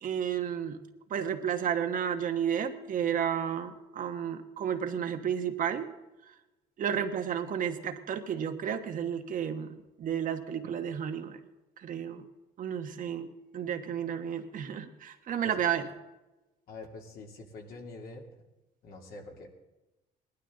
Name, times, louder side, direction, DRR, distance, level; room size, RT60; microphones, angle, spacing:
voice 1, 0.0-0.8 1.1-5.9 6.8-11.4 11.8-12.2 12.6-13.3 13.5-15.9, right 8 dB, 50° right, 7 dB, 1.2 m, -32 dB
voice 2, 16.7-18.3 18.8-19.5, left 3 dB, 65° left, 1 dB, 2.7 m, -45 dB
18.5 x 12.0 x 3.8 m, 1.1 s
cardioid pair, 110°, 17 cm